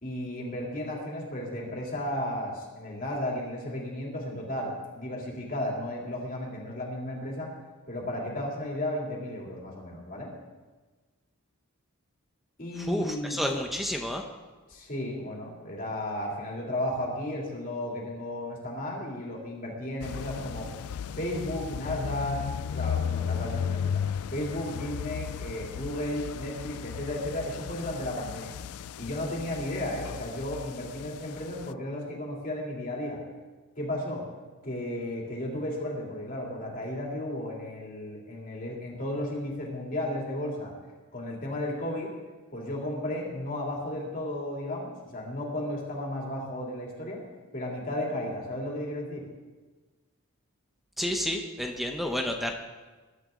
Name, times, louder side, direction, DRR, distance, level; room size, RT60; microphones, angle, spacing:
voice 1, 0.0-7.5 7.9-10.3 12.6-13.4 14.7-20.7 21.1-22.4 22.7-24.0 24.3-28.6 29.0-33.2 33.8-34.2 34.6-40.7 41.1-42.1 42.5-47.2 47.5-49.3, left 1 dB, 40° left, -2 dB, 3.2 m, -34 dB
voice 2, 12.8-14.2 51.0-52.5, left 1 dB, ahead, 3 dB, 0.9 m, -30 dB
sound 1, 20.0-31.7, left 7 dB, 85° left, 0.4 m, -35 dB
21.5 x 11.5 x 3.9 m, 1.3 s
head